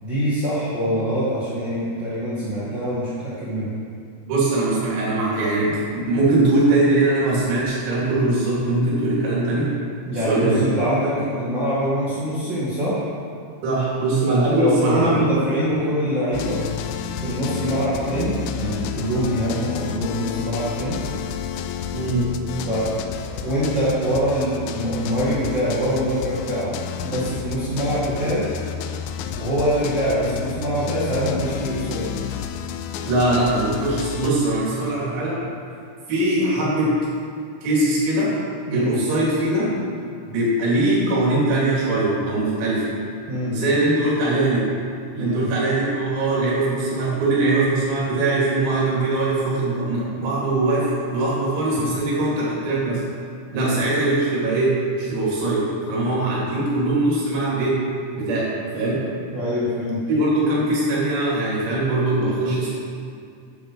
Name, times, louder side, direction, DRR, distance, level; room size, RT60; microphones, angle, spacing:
voice 1, 0.0-3.7 10.1-13.0 14.5-16.6 17.2-21.0 22.6-22.9 23.3-26.7 27.0-28.5 29.4-32.0 38.7-39.0 43.3-43.6 45.2-45.5 53.5-53.8 59.3-60.0, equal, 55° right, -10 dB, 1.2 m, -24 dB
voice 2, 4.3-9.7 10.3-10.7 13.6-15.2 21.9-22.3 33.1-35.4 36.1-37.0 37.6-38.3 38.7-39.7 40.3-42.9 43.5-44.7 45.2-53.0 53.5-55.6 55.9-57.8 58.2-59.0 60.1-62.7, right 2 dB, 90° right, -7 dB, 6.2 m, -21 dB
sound 1, 16.3-34.3, left 8 dB, 85° left, 2.7 m, -31 dB
12.0 x 10.0 x 5.0 m, 2.3 s
omnidirectional pair, 6.0 m